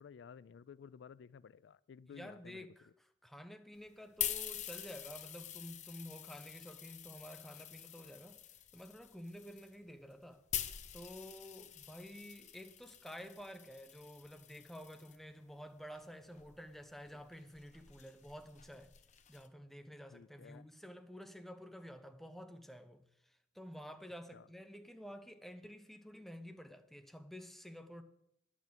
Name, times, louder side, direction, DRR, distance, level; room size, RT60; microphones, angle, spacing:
voice 1, 0.0-2.6 20.1-20.6, left 7 dB, 85° left, 0.3 m, -54 dB
voice 2, 2.1-8.4 8.7-10.4 10.9-18.9 19.3-28.0, equal, ahead, 0.8 m, -51 dB
sound 1, 3.8-15.2 15.9-19.5, left 10 dB, 40° left, 0.8 m, -46 dB
10.0 x 6.3 x 8.7 m
head